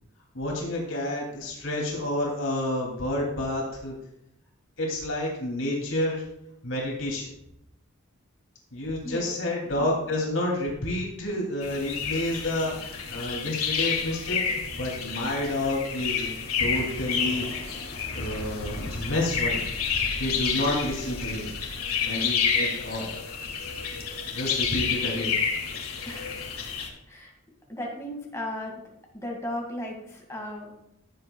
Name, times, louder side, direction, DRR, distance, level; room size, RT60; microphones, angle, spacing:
voice 1, 0.3-3.9 4.8-6.2 6.6-7.3 8.7-16.3 16.6-17.8 18.1-19.6 20.2-21.4 22.1-23.1 24.3-25.3, left 1 dB, 65° left, -2 dB, 2.7 m, -29 dB
sound 1, 11.6-26.9, left 6 dB, 85° left, 1.7 m, -30 dB
voice 2, 27.7-28.8 29.1-30.8, left 1 dB, 15° left, -1 dB, 1.8 m, -35 dB
15.5 x 7.7 x 2.3 m, 0.80 s
head